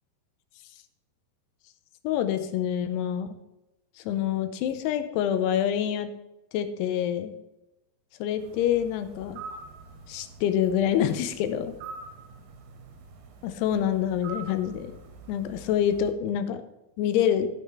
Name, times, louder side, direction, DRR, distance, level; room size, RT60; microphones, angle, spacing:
voice 1, 2.0-3.4 4.1-6.1 6.5-7.3 8.2-9.4 10.1-11.7 13.4-14.9 15.3-16.6 17.0-17.5, left 9 dB, 90° left, 10 dB, 2.7 m, -26 dB
sound 1, 8.4-16.1, right 4 dB, 60° right, 2.3 m, -45 dB
13.0 x 6.7 x 4.4 m, 0.95 s
omnidirectional pair, 4.7 m